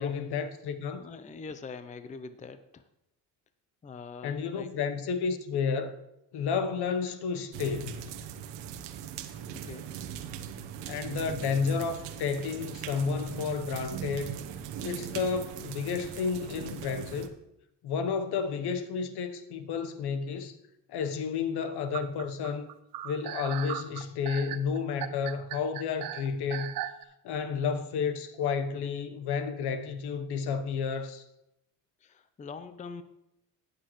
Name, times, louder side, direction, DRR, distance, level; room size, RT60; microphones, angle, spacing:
voice 1, 0.0-1.1 4.2-6.0 6.3-8.0 10.9-14.3 14.8-17.4 17.8-20.6 20.9-22.7 23.0-26.7 27.2-31.2, left 6 dB, 65° left, 1.1 m, -31 dB
voice 2, 0.9-2.9 3.8-4.7 9.5-9.9 32.0-33.0, left 4 dB, 20° left, 0.5 m, -43 dB
sound 1, 7.5-17.3, right 9 dB, 80° right, 1.0 m, -40 dB
sound 2, 21.9-27.0, right 13 dB, 55° right, 0.7 m, -37 dB
17.5 x 6.6 x 3.1 m
supercardioid pair, 85°, 42 cm